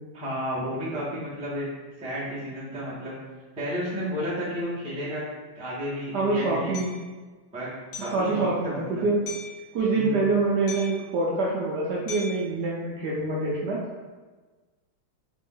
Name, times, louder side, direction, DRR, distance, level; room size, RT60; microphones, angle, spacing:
voice 1, 0.1-1.7 2.0-3.1 3.6-5.2 5.5-6.7 7.5-7.7 8.0-9.0 9.9-10.2, equal, 5° right, -8 dB, 0.5 m, -32 dB
voice 2, 6.1-6.9 8.1-9.2 9.7-13.8, right 3 dB, 70° right, -4 dB, 1.0 m, -25 dB
Hammer, 6.7-7.0 7.9-8.2 9.3-9.6 10.7-11.1 12.1-12.5, left 4 dB, 65° left, 0.6 m, -38 dB
3.4 x 3.0 x 3.7 m, 1.3 s
omnidirectional pair, 2.2 m